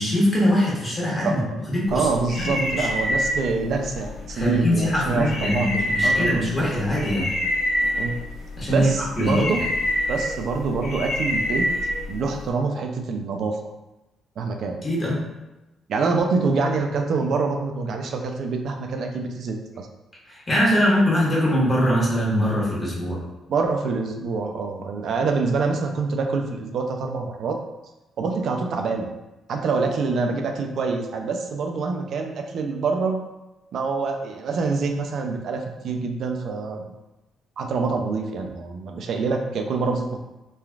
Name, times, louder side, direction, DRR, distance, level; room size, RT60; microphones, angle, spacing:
voice 1, 0.0-1.4 1.7-2.1 2.4-2.9 4.3-7.3 8.6-8.9 9.2-9.7 14.8-15.2 20.3-23.2, equal, 30° left, -6 dB, 1.2 m, -22 dB
voice 2, 1.2-1.6 1.9-6.4 8.0-8.2 8.7-9.6 10.1-11.7 12.1-13.7 14.4-14.8 15.9-19.9 23.5-27.6 28.2-29.1 29.5-33.2 33.7-36.9 37.6-40.2, right 4 dB, 65° right, 4 dB, 0.4 m, -26 dB
sound 1, 1.9-12.5, equal, 60° left, 0.5 m, -27 dB
3.1 x 2.3 x 2.3 m, 1.0 s
cardioid pair, 90°, 0 cm